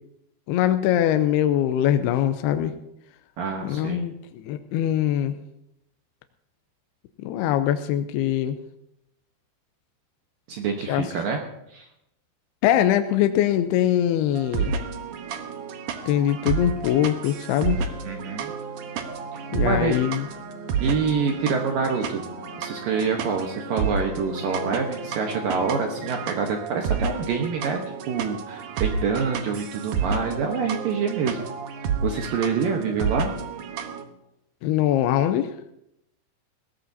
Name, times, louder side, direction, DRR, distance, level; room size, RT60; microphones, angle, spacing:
voice 1, 0.5-2.7 3.6-5.4 7.2-8.6 10.9-11.0 12.6-14.7 16.1-17.8 19.5-20.3 34.6-35.5, left 11 dB, 80° left, 8 dB, 2.3 m, -22 dB
voice 2, 3.4-4.1 10.5-11.4 11.7-11.9 18.0-18.5 19.6-20.0 20.8-22.2 22.6-27.8 28.1-31.4 32.0-33.3, right 5 dB, 70° right, 2 dB, 2.3 m, -26 dB
sound 1, 14.3-34.0, right 5 dB, 90° right, 1.8 m, -31 dB
sound 2, 15.0-26.4, left 1 dB, 40° left, 2.1 m, -44 dB
20.5 x 17.0 x 2.7 m, 0.80 s
omnidirectional pair, 5.1 m